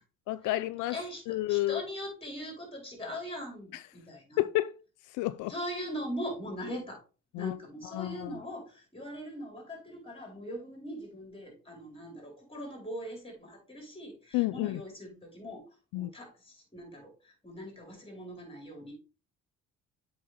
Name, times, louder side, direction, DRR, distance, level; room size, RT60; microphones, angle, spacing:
voice 1, 0.3-1.0 1.3-1.8 3.7-3.8 4.4-4.7 5.1-5.5 7.3-7.5 7.9-8.3 14.3-14.8 15.9-16.1, left 17 dB, 80° left, 0.4 m, -30 dB
voice 2, 0.9-1.2 1.5-4.4 5.5-7.0 7.3-15.6 15.9-18.9, equal, 20° left, 4.4 m, -41 dB
7.7 x 5.5 x 3.5 m
cardioid pair, 85°, 30 cm